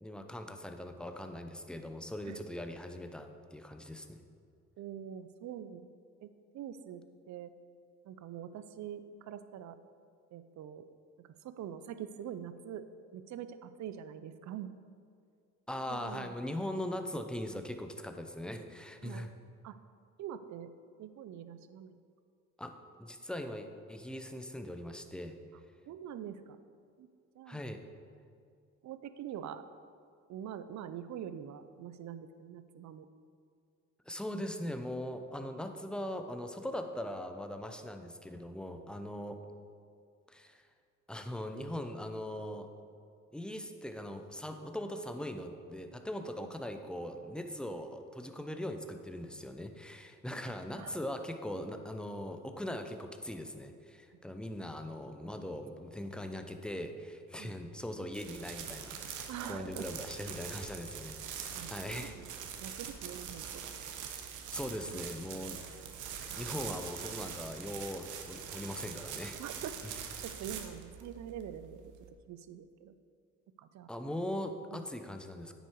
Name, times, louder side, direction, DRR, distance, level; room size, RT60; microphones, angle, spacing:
voice 1, 0.0-4.2 15.7-19.3 22.6-25.4 27.5-27.8 34.1-39.4 40.3-40.6 41.1-42.7 43.3-62.2 64.5-65.6 66.1-69.4 73.9-75.5, left 1 dB, 5° left, 6 dB, 0.7 m, -40 dB
voice 2, 4.8-5.9 6.2-7.5 8.0-9.8 10.3-10.8 11.2-12.9 13.1-14.7 15.9-16.4 19.0-19.3 19.6-19.8 20.2-20.7 21.0-22.0 25.9-26.6 27.0-27.1 27.3-27.6 28.8-29.6 30.3-33.1 46.4-46.5 50.3-50.5 50.7-51.0 57.4-57.6 59.3-59.9 61.5-63.6 64.8-65.0 69.3-69.8 70.2-71.9 72.3-72.9 73.6-73.9 74.7-74.8, right 9 dB, 65° right, 12 dB, 0.6 m, -44 dB
sound 1, 58.1-72.1, right 7 dB, 85° right, 1.0 m, -44 dB
9.4 x 6.6 x 4.6 m, 2.3 s
cardioid pair, 90°, 30 cm